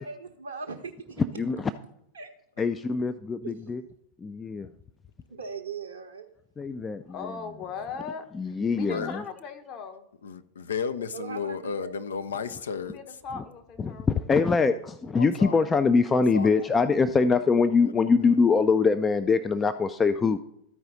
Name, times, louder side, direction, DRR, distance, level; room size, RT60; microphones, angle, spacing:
voice 1, 0.0-1.4 2.1-2.3 3.4-3.6 5.3-6.3 11.1-11.9, right 5 dB, 70° right, 0.7 m, -39 dB
voice 2, 1.4-1.7 2.6-3.8 4.2-4.7 6.6-7.4 8.3-9.2 13.3-13.4 13.8-20.4, left 4 dB, 15° left, 0.4 m, -23 dB
voice 3, 7.1-10.1 12.9-14.3, left 5 dB, 35° left, 1.2 m, -39 dB
voice 4, 8.7-9.2 10.2-13.2 15.2-15.7 16.1-16.5, left 6 dB, 65° left, 0.6 m, -34 dB
13.5 x 4.7 x 4.0 m
figure-of-eight pair, 90°, 0 cm